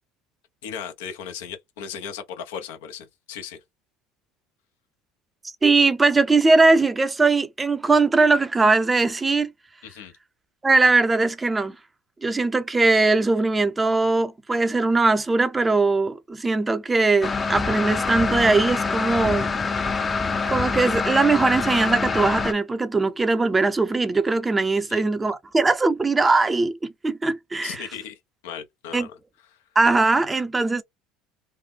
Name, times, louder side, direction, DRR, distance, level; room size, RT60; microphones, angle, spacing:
voice 1, 0.6-3.6 9.8-10.1 24.9-25.0 27.6-29.2, left 8 dB, 90° left, 1.0 m, -37 dB
voice 2, 5.6-9.5 10.6-11.8 12.2-19.5 20.4-27.9 28.9-29.1 29.8-30.8, right 3 dB, 15° right, 0.6 m, -20 dB
sound 1, 17.2-22.5, left 4 dB, 25° left, 0.6 m, -25 dB
3.3 x 2.2 x 3.7 m
supercardioid pair, 105°, 0 cm